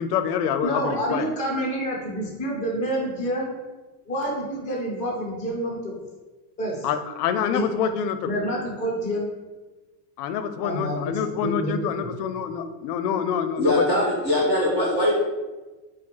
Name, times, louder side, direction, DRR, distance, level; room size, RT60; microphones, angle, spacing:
voice 1, 0.0-1.3 6.8-8.2 10.2-13.8, left 8 dB, 75° left, 9 dB, 0.6 m, -26 dB
voice 2, 0.6-3.5 4.1-5.9 6.6-6.9 7.5-7.7 8.2-9.3 10.6-12.1, equal, 15° left, -4 dB, 0.7 m, -28 dB
voice 3, 13.6-15.1, left 1 dB, 20° right, -6 dB, 1.1 m, -21 dB
4.6 x 2.0 x 4.5 m, 1.2 s
supercardioid pair, 175°, 49 cm